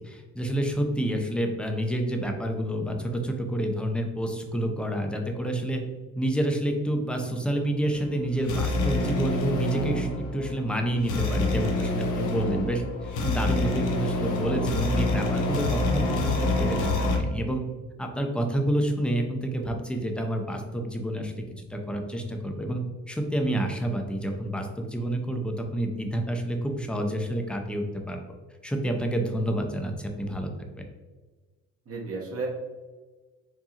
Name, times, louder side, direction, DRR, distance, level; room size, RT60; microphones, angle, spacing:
voice 1, 0.0-5.8 6.2-17.6 18.0-22.8 23.1-28.2 28.6-30.7, right 1 dB, 5° left, 3 dB, 0.6 m, -29 dB
sound 1, 7.8-17.2, left 2 dB, 80° left, 0.8 m, -27 dB
voice 2, 31.9-32.5, right 3 dB, 50° right, -1 dB, 1.2 m, -34 dB
4.7 x 2.6 x 2.9 m, 1.3 s
cardioid pair, 90°, 30 cm